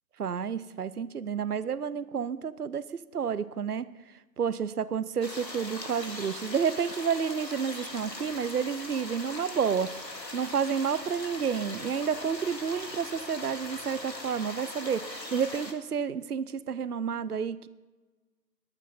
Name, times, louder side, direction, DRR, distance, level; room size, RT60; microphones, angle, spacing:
voice 1, 0.2-2.8 3.1-3.9 4.4-9.9 10.3-17.7, right 7 dB, 65° right, 16 dB, 0.6 m, -30 dB
sound 1, 5.2-15.7, left 2 dB, 80° left, 2.0 m, -40 dB
sound 2, 7.8-13.8, left 1 dB, 35° left, 4.9 m, -59 dB
20.5 x 9.0 x 4.2 m, 1.3 s
figure-of-eight pair, 165°, 50 cm